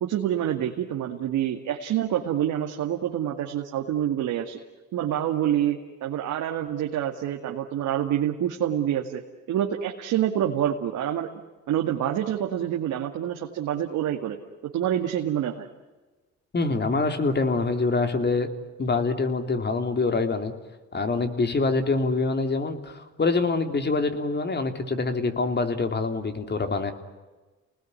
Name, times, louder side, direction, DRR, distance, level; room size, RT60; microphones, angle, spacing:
voice 1, 0.0-4.6 4.9-9.2 9.5-11.3 11.7-14.4 14.7-15.7, right 10 dB, 85° right, 2 dB, 2.2 m, -27 dB
voice 2, 16.5-18.5 18.8-20.5 20.9-26.9, left 3 dB, 35° left, 6 dB, 3.4 m, -25 dB
30.0 x 20.0 x 9.9 m, 1.2 s
cardioid pair, 90°, 30 cm